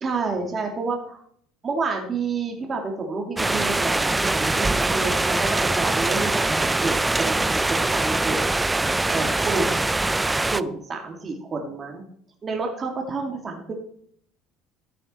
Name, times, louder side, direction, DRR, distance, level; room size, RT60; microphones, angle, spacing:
voice 1, 0.0-1.2 1.6-8.4 9.1-9.7 10.5-12.0 12.4-13.7, right 4 dB, 35° right, 2 dB, 2.7 m, -29 dB
sound 1, 3.4-10.6, right 2 dB, 15° right, 0.5 m, -23 dB
14.5 x 7.7 x 4.5 m, 0.64 s
supercardioid pair, 80°, 0 cm